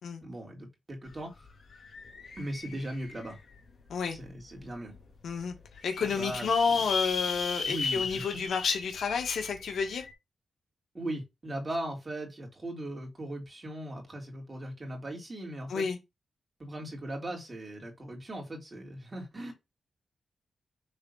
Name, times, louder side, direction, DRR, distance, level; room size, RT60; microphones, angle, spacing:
voice 1, 0.2-1.3 2.4-3.4 4.1-4.9 6.0-6.5 7.6-8.4 10.9-15.9 16.6-19.5, right 1 dB, 25° right, 3.0 m, -39 dB
sound 1, 1.1-1.2 1.4-3.5 4.1-4.2 4.6-4.7 4.9-5.0 5.5-10.1, left 4 dB, 65° left, 3.3 m, -36 dB
voice 2, 5.2-5.5 5.8-10.0 15.7-16.0, left 5 dB, 85° left, 1.7 m, -30 dB
6.5 x 3.8 x 5.6 m
wide cardioid pair, 130°, 0 cm